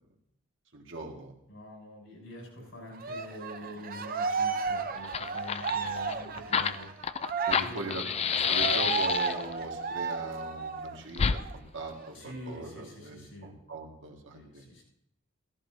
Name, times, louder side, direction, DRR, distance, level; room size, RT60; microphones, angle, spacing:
voice 1, 0.7-1.3 7.5-8.0 8.3-14.7, right 2 dB, 65° right, 0 dB, 1.9 m, -40 dB
voice 2, 1.5-7.1 7.6-8.1 12.1-13.5 14.3-14.8, left 1 dB, 80° left, -1 dB, 6.0 m, -45 dB
Cheering, 3.0-11.0 11.3-11.5 11.9-12.9, right 5 dB, 45° right, 0.7 m, -33 dB
Fire, 4.7-4.8 5.0-9.5 11.1-11.4, left 7 dB, 30° left, 0.4 m, -29 dB
15.5 x 14.0 x 2.8 m, 0.74 s
head